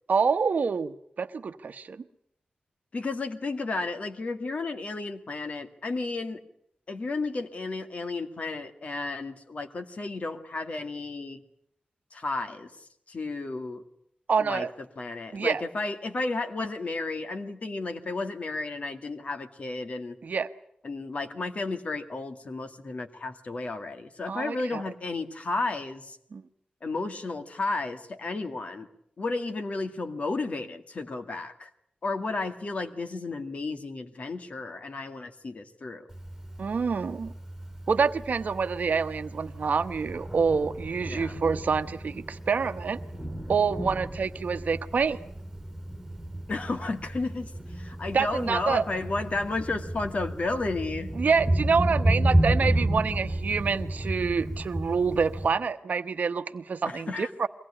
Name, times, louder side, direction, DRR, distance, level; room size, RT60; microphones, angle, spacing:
voice 1, 0.1-2.0 14.3-14.7 15.3-15.6 20.2-20.5 24.3-24.8 26.3-26.4 36.6-37.3 37.9-43.0 43.5-45.2 48.1-48.8 51.1-57.5, right 5 dB, 65° right, 10 dB, 1.0 m, -27 dB
voice 2, 2.9-6.4 6.9-11.4 12.1-13.8 14.4-14.7 15.0-20.2 20.8-26.2 26.8-28.9 29.2-31.7 32.0-36.1 41.0-41.4 46.5-51.1 56.8-57.3, left 3 dB, 50° left, 7 dB, 2.0 m, -33 dB
Thunder, 36.1-55.5, right 1 dB, 5° right, 5.4 m, -32 dB
23.5 x 18.5 x 9.9 m, 0.72 s
wide cardioid pair, 150°, 3 cm